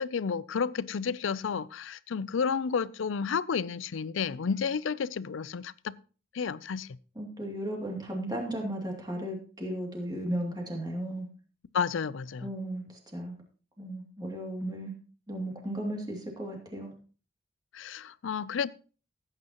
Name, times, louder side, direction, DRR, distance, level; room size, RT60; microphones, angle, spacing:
voice 1, 0.0-5.9 6.3-6.9 11.7-12.5 17.7-18.7, left 6 dB, 80° left, 0.4 m, -31 dB
voice 2, 7.2-11.3 12.4-12.8 13.1-13.3 13.8-14.9 15.3-16.9, right 1 dB, 20° right, 2.5 m, -35 dB
16.5 x 9.1 x 2.9 m
head